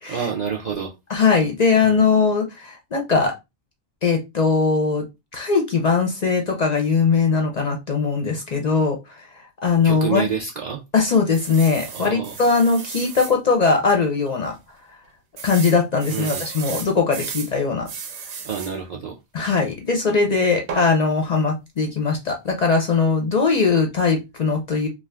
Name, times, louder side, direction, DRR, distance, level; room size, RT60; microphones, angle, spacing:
voice 1, 0.1-0.9 1.8-2.0 9.8-10.8 11.9-12.3 16.1-16.4 18.4-19.2, right 7 dB, 55° right, 0.5 m, -28 dB
voice 2, 1.1-3.3 4.0-5.0 5.3-9.3 9.6-10.2 10.9-14.5 15.4-17.9 19.3-24.9, left 4 dB, 50° left, 0.5 m, -20 dB
sound 1, 11.3-13.4 13.9-14.0 14.3-14.4 15.4-17.5 17.9-18.8 20.7-20.9, right 6 dB, 80° right, 0.9 m, -34 dB
2.4 x 2.3 x 3.3 m
omnidirectional pair, 1.1 m